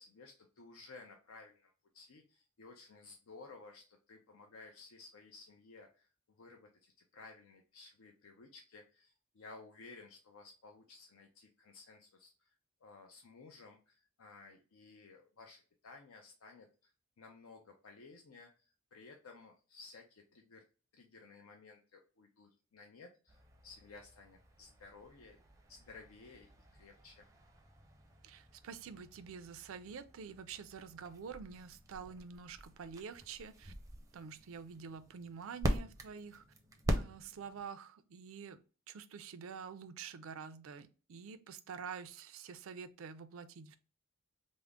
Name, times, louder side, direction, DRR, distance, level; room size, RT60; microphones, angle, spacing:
voice 1, 0.0-12.6 12.8-16.9 17.2-20.6 20.9-25.4 25.7-27.3, left 3 dB, 75° left, 0.5 m, -56 dB
sound 1, 23.3-37.7, equal, 15° right, 0.5 m, -43 dB
voice 2, 28.2-33.7 34.1-36.4 36.9-38.6 38.9-43.8, right 6 dB, 70° right, 0.4 m, -47 dB
3.6 x 2.0 x 3.5 m
head